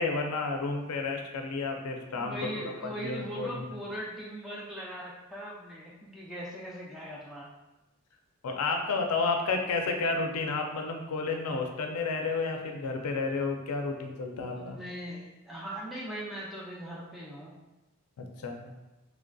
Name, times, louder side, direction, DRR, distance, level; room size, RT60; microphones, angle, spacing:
voice 1, 0.0-3.6 8.4-14.8 18.2-18.7, left 3 dB, 90° left, 3 dB, 0.4 m, -31 dB
voice 2, 1.8-7.5 14.5-17.5, right 1 dB, ahead, -6 dB, 0.4 m, -40 dB
3.1 x 2.5 x 2.2 m, 1.0 s
head